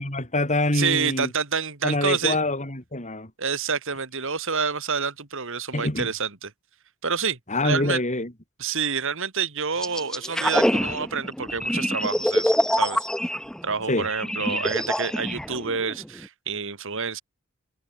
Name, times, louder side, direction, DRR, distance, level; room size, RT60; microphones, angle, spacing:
voice 1, 0.0-1.3 1.8-3.3 5.7-6.1 7.5-8.3 13.9-14.1 14.4-14.7, left 2 dB, 35° left, 7.0 m, -25 dB
voice 2, 0.7-2.4 3.4-6.5 7.0-8.0 8.6-13.1 13.6-17.2, right 6 dB, 60° right, 2.8 m, -28 dB
sound 1, 9.8-16.2, equal, 5° left, 1.3 m, -25 dB
head